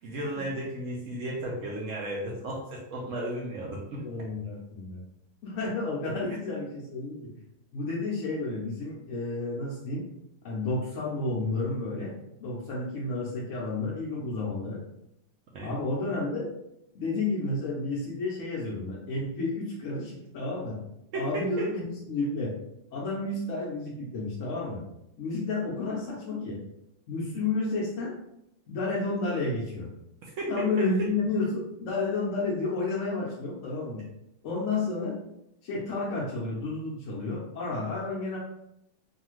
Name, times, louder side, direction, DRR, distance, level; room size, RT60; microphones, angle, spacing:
voice 1, 0.0-4.0 15.5-15.7 21.1-21.7 30.4-30.9, right 1 dB, 75° right, -2 dB, 0.7 m, -34 dB
voice 2, 4.0-5.0 5.4-7.3 7.7-10.0 10.4-12.1 12.4-14.8 15.6-16.5 16.9-20.8 21.1-22.5 22.9-24.8 25.2-26.6 27.1-28.1 28.7-29.9 30.5-34.0 34.4-35.2 35.6-38.4, left 3 dB, 70° left, -4 dB, 0.7 m, -31 dB
2.7 x 2.4 x 2.9 m, 0.83 s
omnidirectional pair, 1.8 m